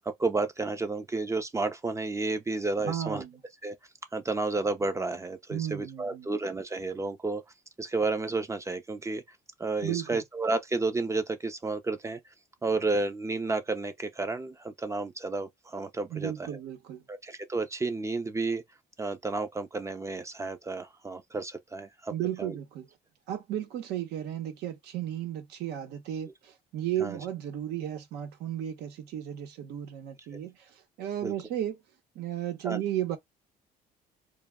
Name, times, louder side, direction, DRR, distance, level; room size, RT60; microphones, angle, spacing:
voice 1, 0.2-3.2 3.6-3.8 4.1-7.4 7.8-9.2 9.6-12.2 12.6-16.6 17.1-18.6 19.0-22.1 22.4-22.5 27.0-27.2 30.3-30.4 31.2-31.3 32.6-32.8, right 3 dB, 15° right, 0.4 m, -31 dB
voice 2, 2.8-3.4 5.5-6.3 9.8-10.2 16.1-17.0 22.1-22.9 23.3-30.7 31.0-31.8 32.1-33.2, right 11 dB, 80° right, 0.7 m, -34 dB
2.1 x 2.1 x 3.4 m
cardioid pair, 110°, 17 cm